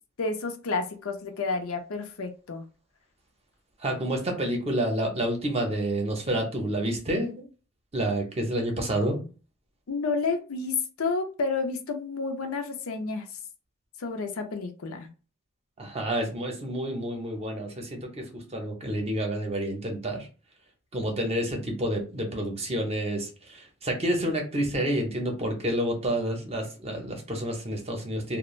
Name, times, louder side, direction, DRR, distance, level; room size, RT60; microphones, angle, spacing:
voice 1, 0.2-2.6 9.9-13.3 14.0-15.1, left 4 dB, 80° left, 4 dB, 0.6 m, -30 dB
voice 2, 3.8-7.4 7.9-9.2 15.8-20.3 20.9-28.4, right 1 dB, 30° right, 2 dB, 0.7 m, -29 dB
2.4 x 2.1 x 3.0 m, 0.35 s
head